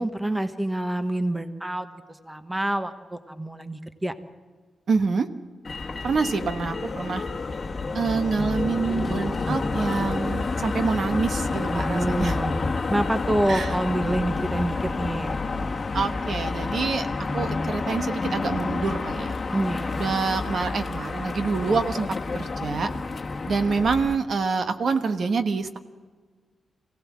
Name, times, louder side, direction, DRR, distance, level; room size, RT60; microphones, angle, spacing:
voice 1, 0.0-1.9 2.3-4.1 11.7-12.5 12.9-15.4 19.5-20.1, right 1 dB, 10° right, 9 dB, 1.1 m, -27 dB
voice 2, 4.9-5.3 6.0-7.2 7.9-12.4 13.5-13.8 15.9-17.1 17.3-19.3 19.9-22.1 22.3-22.9 23.5-25.8, right 4 dB, 60° right, 7 dB, 1.3 m, -26 dB
Motor vehicle (road), 5.6-24.1, left 3 dB, 35° left, 1.4 m, -29 dB
24.0 x 17.0 x 7.3 m, 1.5 s
wide cardioid pair, 130°, 0 cm